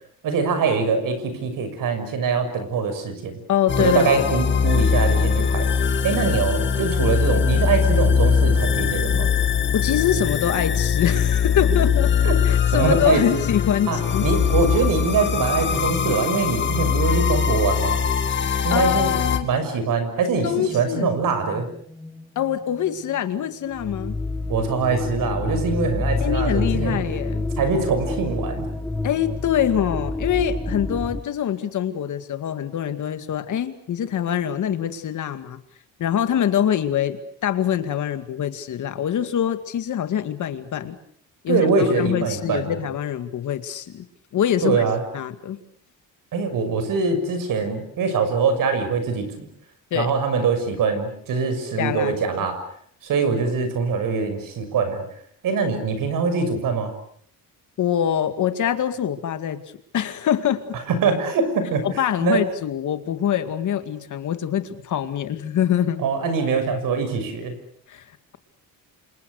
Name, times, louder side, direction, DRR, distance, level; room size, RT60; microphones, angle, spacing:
voice 1, 0.2-3.4 3.8-5.7 6.0-9.3 12.2-12.4 12.7-13.4 13.9-18.0 18.6-19.1 19.4-21.7 24.5-27.0 27.6-28.7 41.5-42.7 44.6-45.0 46.3-49.5 49.9-52.6 53.0-55.0 55.4-56.9 61.0-61.8 62.2-62.4 66.0-67.5, right 5 dB, 60° right, 9 dB, 6.4 m, -23 dB
voice 2, 3.5-4.3 9.7-12.1 12.4-14.3 18.7-19.5 20.4-21.1 22.4-24.1 26.2-27.4 29.0-35.6 36.0-41.0 41.4-41.6 42.0-44.1 44.3-44.8 45.1-45.6 49.9-50.1 51.8-52.1 57.8-59.6 59.9-60.6 61.8-66.0 67.9-68.0, left 9 dB, 55° left, 10 dB, 2.2 m, -24 dB
sound 1, 3.7-19.4, left 6 dB, 30° left, 2.1 m, -21 dB
sound 2, 20.5-23.2 23.4-31.2, left 2 dB, 5° left, 1.7 m, -29 dB
29.5 x 27.0 x 6.6 m, 0.62 s
cardioid pair, 175°, 36 cm